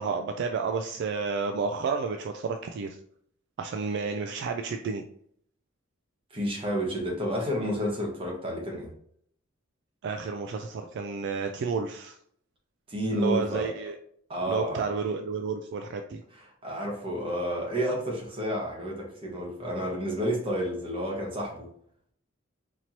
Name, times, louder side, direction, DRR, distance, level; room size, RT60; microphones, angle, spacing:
voice 1, 0.0-2.9 3.6-5.0 10.0-12.1 13.1-13.9 14.5-16.2, right 5 dB, 55° right, 5 dB, 0.3 m, -31 dB
voice 2, 6.3-8.9 12.9-13.7 14.3-14.8 16.3-21.7, equal, 25° right, -1 dB, 1.1 m, -30 dB
4.4 x 2.9 x 2.7 m, 0.65 s
head